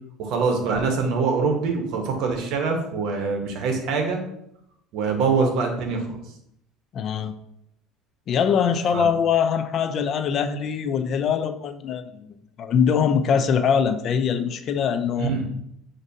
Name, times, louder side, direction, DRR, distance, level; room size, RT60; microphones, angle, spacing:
voice 1, 0.2-4.2 4.9-6.2 8.9-9.0 15.2-15.4, right 4 dB, 65° right, 3 dB, 0.9 m, -24 dB
voice 2, 6.9-7.3 8.3-15.3, left 7 dB, 45° left, 10 dB, 0.3 m, -23 dB
6.1 x 2.6 x 2.7 m, 0.77 s
cardioid pair, 130°, 0 cm